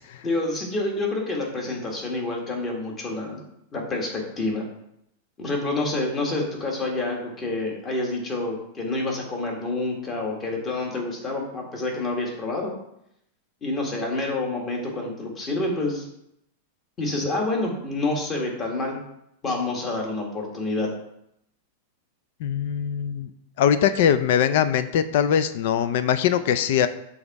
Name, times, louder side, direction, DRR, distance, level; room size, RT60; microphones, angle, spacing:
voice 1, 0.2-3.4 3.7-4.6 5.4-12.7 13.6-16.1 17.0-19.0 19.4-20.9, left 2 dB, 20° left, 0 dB, 1.5 m, -28 dB
voice 2, 22.4-23.3 23.6-26.9, left 9 dB, 60° left, 12 dB, 0.4 m, -22 dB
7.1 x 3.5 x 4.1 m, 0.79 s
supercardioid pair, 150°, 0 cm